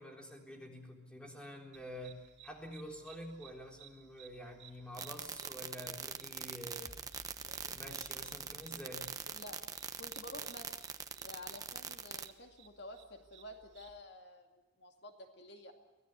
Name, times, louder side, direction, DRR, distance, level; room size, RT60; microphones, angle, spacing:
voice 1, 0.0-7.0 7.6-9.1, equal, 5° left, 1 dB, 3.8 m, -48 dB
sound 1, 1.7-14.0, right 6 dB, 65° right, 2.5 m, -61 dB
sound 2, 4.9-12.3, right 6 dB, 20° right, 1.0 m, -42 dB
sound 3, 6.8-10.3, left 1 dB, 25° left, 3.2 m, -61 dB
voice 2, 10.0-15.7, left 1 dB, 60° left, 5 dB, 2.4 m, -51 dB
24.5 x 18.0 x 8.1 m, 1.1 s
head